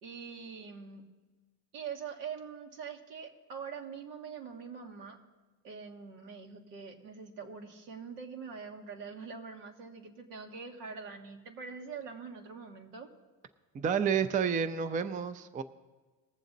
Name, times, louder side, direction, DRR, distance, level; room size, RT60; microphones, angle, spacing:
voice 1, 0.0-1.0 1.7-5.2 5.6-13.1, right 6 dB, 90° right, 2 dB, 1.7 m, -44 dB
voice 2, 13.7-15.6, right 7 dB, 20° right, 11 dB, 0.4 m, -30 dB
20.5 x 7.2 x 3.9 m, 1.3 s
supercardioid pair, 105°, 46 cm